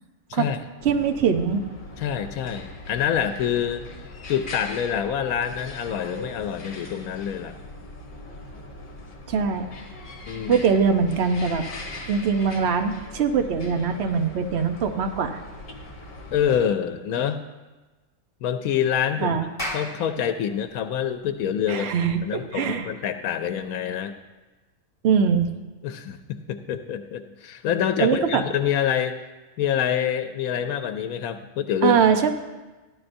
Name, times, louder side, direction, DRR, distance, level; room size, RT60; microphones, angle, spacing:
sound 1, 0.8-16.7, left 2 dB, 40° left, 1.2 m, -40 dB
voice 1, 0.8-1.6 9.3-9.7 10.5-11.6 12.1-15.4 19.2-19.5 21.7-22.2 22.5-22.9 25.0-25.5 28.0-28.4 31.8-32.3, right 6 dB, 55° right, 6 dB, 1.0 m, -22 dB
voice 2, 2.0-7.6 10.3-10.6 16.3-17.4 18.4-19.4 19.7-21.9 22.2-24.1 25.8-29.2 29.6-31.9, left 9 dB, 85° left, 8 dB, 1.0 m, -26 dB
Clapping, 19.5-24.3, equal, 15° left, 2.2 m, -38 dB
15.0 x 11.0 x 2.6 m, 1.2 s
omnidirectional pair, 1.5 m